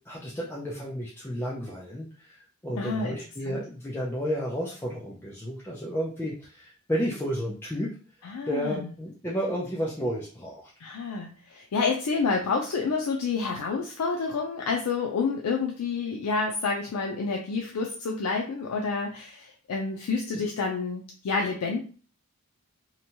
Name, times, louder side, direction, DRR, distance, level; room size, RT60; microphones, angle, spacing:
voice 1, 0.1-2.4 2.6-7.9 8.5-10.7 20.3-20.5, equal, 10° left, -5 dB, 0.3 m, -32 dB
voice 2, 2.8-3.2 3.5-3.6 8.2-8.9 10.8-21.8, left 4 dB, 90° left, 1 dB, 0.4 m, -29 dB
2.8 x 2.2 x 2.7 m, 0.40 s
head